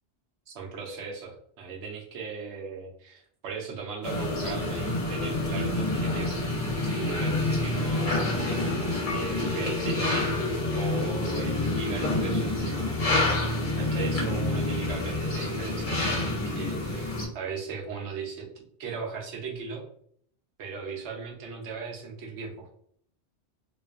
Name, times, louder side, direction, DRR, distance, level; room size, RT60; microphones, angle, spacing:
voice 1, 0.5-6.4 6.8-8.7 9.1-10.4 10.7-13.0 13.8-19.8 20.6-22.7, right 5 dB, 85° right, 0 dB, 0.9 m, -38 dB
sound 1, 4.0-17.3, left 2 dB, 50° left, 0.9 m, -28 dB
2.5 x 2.3 x 2.4 m, 0.63 s
omnidirectional pair, 1.1 m